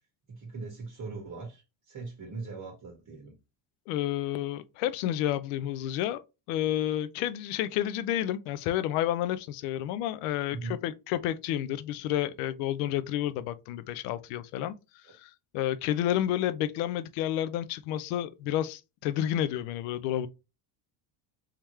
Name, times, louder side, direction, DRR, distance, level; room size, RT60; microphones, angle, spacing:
voice 1, 0.3-3.4 10.5-10.8 15.0-15.1, right 3 dB, 35° right, 1.5 m, -40 dB
voice 2, 3.9-6.2 6.5-14.7 15.2-20.3, left 12 dB, 80° left, 0.6 m, -30 dB
3.6 x 2.9 x 3.1 m
cardioid pair, 110°, 48 cm